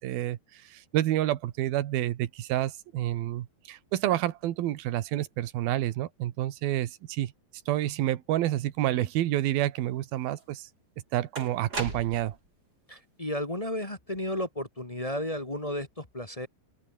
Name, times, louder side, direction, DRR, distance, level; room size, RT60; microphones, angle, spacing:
voice 1, 0.0-7.3 7.7-10.7 11.1-12.4, right 14 dB, 75° right, 3.1 m, -29 dB
sound 1, 10.4-10.5 11.3-12.5, right 3 dB, 25° right, 5.6 m, -36 dB
voice 2, 12.9-16.5, left 1 dB, 25° left, 0.8 m, -33 dB
open air
omnidirectional pair, 4.4 m